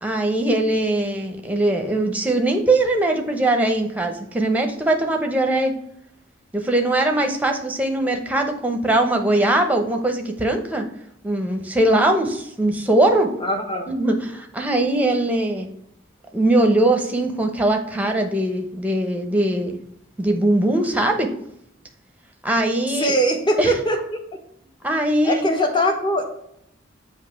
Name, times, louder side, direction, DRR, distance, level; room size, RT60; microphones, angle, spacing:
voice 1, 0.0-5.7 6.5-10.8 11.2-13.3 13.9-15.7 16.3-19.8 20.2-21.3 22.4-23.1 23.6-23.7 24.8-25.4, right 1 dB, 10° right, 4 dB, 0.8 m, -21 dB
voice 2, 13.4-13.9 23.0-24.2 25.2-26.2, equal, 25° left, 3 dB, 1.1 m, -21 dB
7.4 x 2.9 x 5.7 m, 0.74 s
head